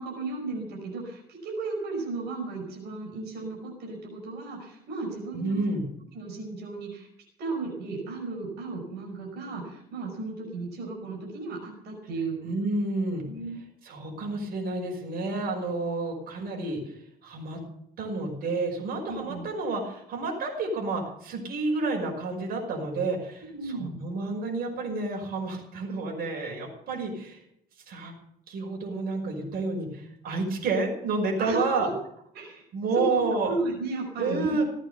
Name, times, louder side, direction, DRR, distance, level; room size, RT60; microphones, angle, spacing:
voice 1, 0.0-5.6 6.1-7.1 7.4-12.4 13.3-13.6 19.1-19.5 23.5-24.0 31.4-31.9 32.3-32.6 32.9-34.6, right 3 dB, 80° right, 1 dB, 5.3 m, -34 dB
voice 2, 5.3-5.8 12.4-13.2 13.8-16.9 17.2-17.6 18.0-27.4 27.9-28.1 28.5-31.9 32.7-33.5 34.2-34.6, right 3 dB, 60° right, 0 dB, 5.6 m, -30 dB
16.5 x 9.0 x 7.0 m, 0.73 s
cardioid pair, 110°, 17 cm